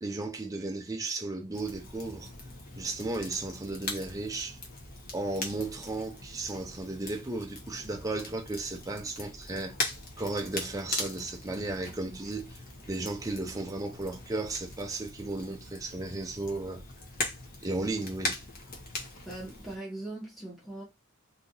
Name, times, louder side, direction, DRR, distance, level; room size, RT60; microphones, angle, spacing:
voice 1, 0.0-2.3 2.8-4.6 5.1-9.7 10.2-12.6 12.9-16.8 17.6-18.4, right 2 dB, 15° right, 0.6 m, -34 dB
Crackle, 1.5-19.8, left 2 dB, 45° left, 1.0 m, -40 dB
voice 2, 19.3-20.8, right 2 dB, ahead, 1.0 m, -40 dB
2.8 x 2.5 x 3.9 m
head